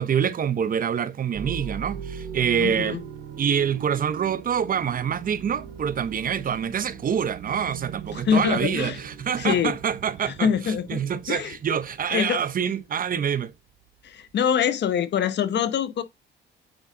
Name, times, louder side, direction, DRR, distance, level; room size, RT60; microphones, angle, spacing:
voice 1, 0.0-3.0 3.4-10.5 10.9-13.5, right 8 dB, 45° right, 0.7 m, -26 dB
sound 1, 1.3-14.4, right 7 dB, 90° right, 1.1 m, -40 dB
voice 2, 2.6-3.0 8.1-9.0 9.4-9.8 10.2-11.6 12.1-12.4 14.0-16.0, left 8 dB, 60° left, 0.8 m, -25 dB
8.8 x 3.7 x 3.7 m
cardioid pair, 90°, 20 cm